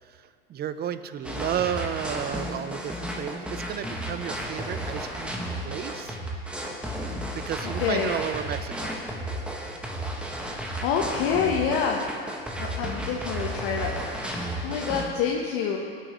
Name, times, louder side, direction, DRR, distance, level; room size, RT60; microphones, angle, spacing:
voice 1, 0.5-5.3 5.6-6.2 7.3-9.0, right 9 dB, 30° right, 12 dB, 0.6 m, -32 dB
sound 1, 1.2-15.1, equal, 5° right, 1.5 m, -33 dB
voice 2, 7.8-8.1 10.8-12.1 12.6-15.8, left 6 dB, 65° left, -1 dB, 1.2 m, -27 dB
18.0 x 8.8 x 3.1 m, 2.2 s
hypercardioid pair, 90°, 30 cm